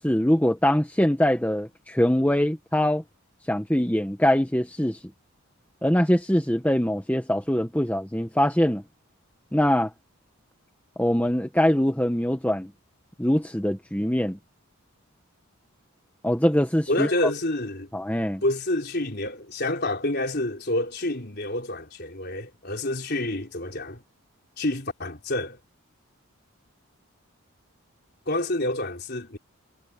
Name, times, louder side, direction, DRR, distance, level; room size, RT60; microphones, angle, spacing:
voice 1, 0.0-3.0 3.5-5.0 5.8-8.8 9.5-9.9 11.0-12.7 13.2-14.4 16.2-17.1 17.9-18.4, equal, 5° left, 1.3 m, -23 dB
voice 2, 16.9-17.9 18.4-24.0 24.6-25.6 28.3-29.4, left 1 dB, 45° left, 4.1 m, -28 dB
head